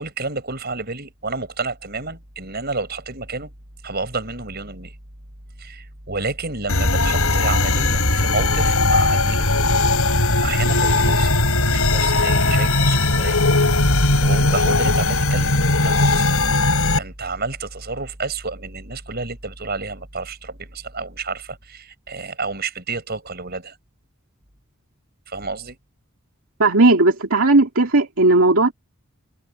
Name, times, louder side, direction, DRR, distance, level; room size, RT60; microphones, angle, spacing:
voice 1, 0.0-3.5 3.8-4.9 5.6-9.5 10.4-11.3 11.7-13.4 14.2-15.5 15.8-16.3 17.0-23.8 25.3-25.8, right 3 dB, 45° right, 6.7 m, -30 dB
sound 1, 6.7-17.0, left 2 dB, 80° left, 5.6 m, -18 dB
voice 2, 26.6-28.7, right 2 dB, 75° right, 2.4 m, -15 dB
head